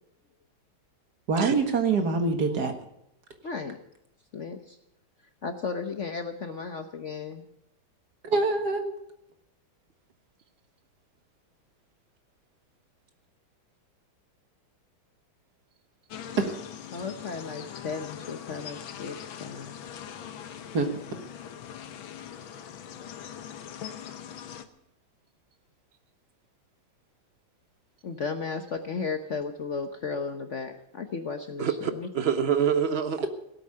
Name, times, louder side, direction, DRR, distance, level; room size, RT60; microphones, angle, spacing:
voice 1, 1.3-2.7 8.2-8.9 16.4-16.6 20.7-20.9, right 4 dB, 55° right, 6 dB, 2.1 m, -25 dB
voice 2, 3.4-3.8 4.3-4.8 5.4-7.5 16.9-19.7 28.0-32.1, left 5 dB, 50° left, 7 dB, 1.0 m, -35 dB
sound 1, 16.1-24.7, left 9 dB, 80° left, 1.8 m, -41 dB
voice 3, 31.6-33.3, right 7 dB, 80° right, 10 dB, 0.5 m, -26 dB
17.5 x 8.4 x 8.5 m, 0.79 s
omnidirectional pair, 2.2 m